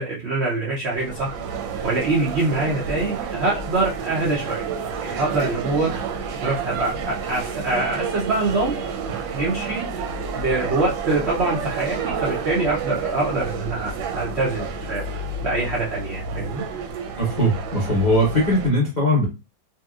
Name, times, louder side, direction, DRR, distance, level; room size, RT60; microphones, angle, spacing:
voice 1, 0.0-1.3 1.8-4.7 5.0-6.1 6.4-8.8 9.3-10.0 10.3-16.6, right 2 dB, 65° right, -4 dB, 0.6 m, -24 dB
sound 1, 0.9-18.7, right 5 dB, 85° right, 1.3 m, -30 dB
voice 2, 17.2-19.3, equal, 40° left, -4 dB, 0.6 m, -20 dB
2.8 x 2.8 x 2.3 m, 0.28 s
omnidirectional pair, 2.0 m